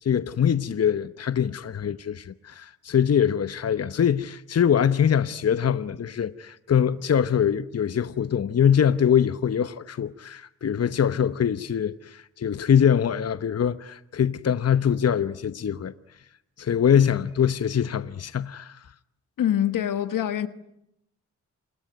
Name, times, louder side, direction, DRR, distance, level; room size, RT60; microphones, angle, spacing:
voice 1, 0.0-15.9 16.6-18.8, left 8 dB, 50° left, 1.0 m, -23 dB
voice 2, 19.4-20.5, left 10 dB, 80° left, 1.4 m, -24 dB
28.5 x 21.0 x 9.3 m
cardioid pair, 50°, 32 cm